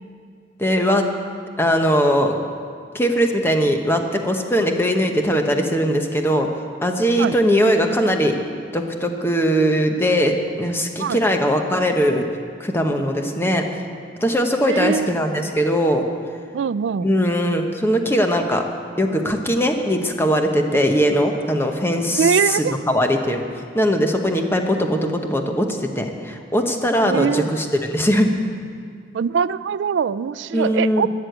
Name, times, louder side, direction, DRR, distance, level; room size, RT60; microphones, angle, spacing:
voice 1, 0.6-1.1 1.6-2.3 2.9-6.5 6.8-8.4 8.7-12.2 12.6-13.6 14.2-16.0 17.0-18.6 19.0-23.4 23.7-28.3 30.5-31.1, equal, 15° left, 4 dB, 1.1 m, -20 dB
voice 2, 14.6-15.2 16.5-17.1 20.7-20.8 22.1-22.7 27.0-27.5 29.1-31.1, right 6 dB, 90° right, 17 dB, 0.3 m, -22 dB
13.0 x 9.8 x 8.0 m, 2.2 s
head